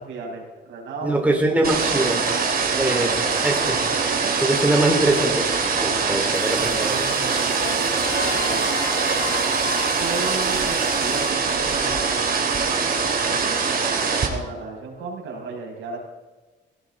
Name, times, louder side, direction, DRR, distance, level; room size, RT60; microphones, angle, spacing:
voice 1, 0.0-1.3 1.8-2.1 2.7-3.2 4.0-4.4 5.8-8.8 10.0-12.5 13.2-16.0, right 4 dB, 80° right, -1 dB, 5.9 m, -35 dB
voice 2, 1.0-2.2 2.8-3.2 3.4-3.8 4.4-7.0, right 2 dB, 5° right, 0 dB, 4.0 m, -22 dB
sound 1, 1.6-14.3, right 5 dB, 50° right, 3.6 m, -23 dB
sound 2, 6.3-11.3, left 1 dB, 20° left, 6.1 m, -41 dB
sound 3, 8.0-12.5, left 4 dB, 70° left, 4.4 m, -34 dB
19.0 x 17.5 x 3.8 m, 1.2 s
cardioid pair, 90°, 20 cm